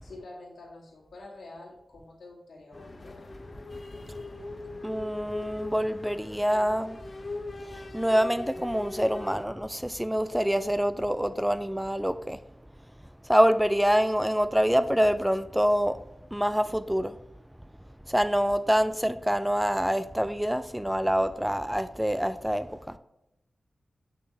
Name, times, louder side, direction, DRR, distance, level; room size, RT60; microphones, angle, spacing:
voice 1, 0.0-3.2, left 2 dB, 80° left, 2.3 m, -47 dB
sound 1, 2.7-9.5, left 2 dB, 50° left, 0.8 m, -41 dB
voice 2, 4.8-7.0 7.7-12.4 13.2-16.0 16.3-17.2 18.1-23.0, equal, 5° right, 0.4 m, -26 dB
6.3 x 5.9 x 3.3 m
cardioid pair, 40°, 0 cm